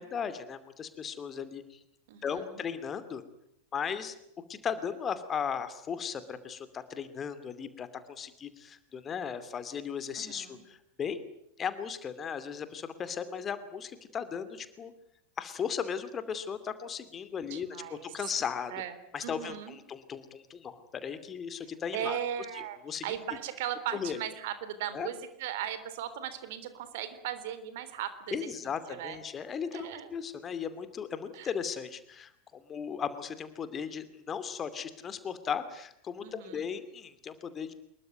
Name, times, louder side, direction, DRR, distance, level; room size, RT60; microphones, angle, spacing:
voice 1, 0.0-1.8 2.2-3.2 3.7-4.2 4.5-11.2 11.6-14.9 15.4-17.7 18.0-18.7 19.1-22.2 22.8-23.0 23.9-24.2 24.9-25.1 28.3-37.7, left 7 dB, 25° left, 12 dB, 2.5 m, -36 dB
voice 2, 2.1-2.6 10.1-10.6 17.5-18.3 18.7-18.9 19.2-19.8 21.9-22.8 23.0-28.5 28.9-29.2 29.7-30.1 31.3-31.5 36.2-36.7, right 10 dB, 50° right, 12 dB, 3.5 m, -38 dB
25.5 x 22.0 x 9.3 m, 0.75 s
figure-of-eight pair, 90°, 0 cm